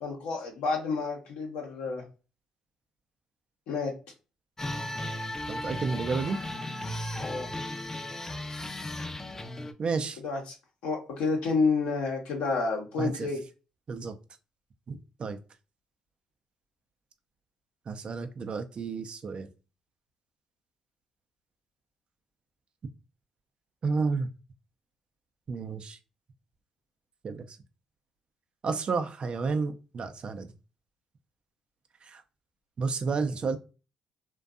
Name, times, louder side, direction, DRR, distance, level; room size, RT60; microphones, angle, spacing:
voice 1, 0.0-2.0 3.7-3.9 7.2-7.5 10.2-10.5 10.8-13.4, left 4 dB, 80° left, 0 dB, 0.7 m, -29 dB
sound 1, 4.6-9.7, left 1 dB, 20° left, 0.4 m, -35 dB
voice 2, 5.5-6.4 9.8-10.2 13.0-13.3 13.9-14.2 14.9-15.4 17.9-19.5 23.8-24.3 25.5-26.0 27.2-27.6 28.6-30.5 32.0-32.2 32.8-33.6, right 4 dB, 50° right, 8 dB, 0.4 m, -31 dB
2.5 x 2.2 x 2.3 m, 0.32 s
hypercardioid pair, 50°, 2 cm